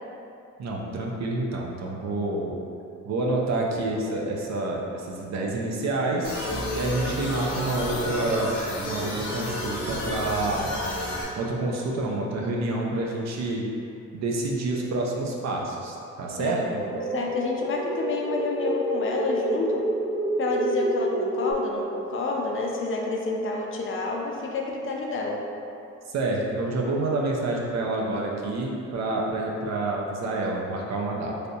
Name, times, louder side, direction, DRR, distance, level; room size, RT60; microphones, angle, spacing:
voice 1, 0.6-2.6 3.0-6.4 6.8-10.7 11.4-13.7 14.1-16.8 26.1-31.3, right 2 dB, 65° right, -1 dB, 0.6 m, -28 dB
sound 1, 6.2-11.2, left 1 dB, 75° left, 0.8 m, -31 dB
voice 2, 16.4-19.8 20.4-25.4, left 3 dB, 45° left, -1 dB, 0.5 m, -29 dB
sound 2, 16.5-21.5, right 1 dB, 15° right, 0.4 m, -28 dB
3.3 x 2.6 x 2.7 m, 2.6 s
cardioid pair, 90°, 30 cm